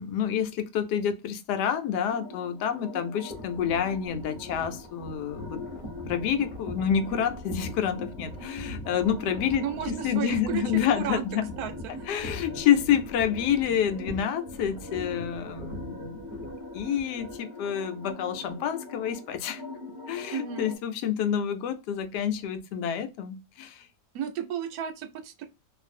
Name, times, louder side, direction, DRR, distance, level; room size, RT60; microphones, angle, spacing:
voice 1, 0.0-5.6 6.1-11.5 12.1-16.2 16.7-19.6 20.1-23.9, left 8 dB, 80° left, 1.1 m, -28 dB
sound 1, 2.1-20.8, left 2 dB, 20° right, 0.7 m, -43 dB
sound 2, 3.3-17.4, equal, 30° left, 1.0 m, -42 dB
voice 2, 9.6-10.6 11.0-11.3 11.6-12.1 20.3-20.7 24.1-25.5, right 8 dB, 70° right, 1.0 m, -33 dB
2.6 x 2.5 x 2.4 m
omnidirectional pair, 1.8 m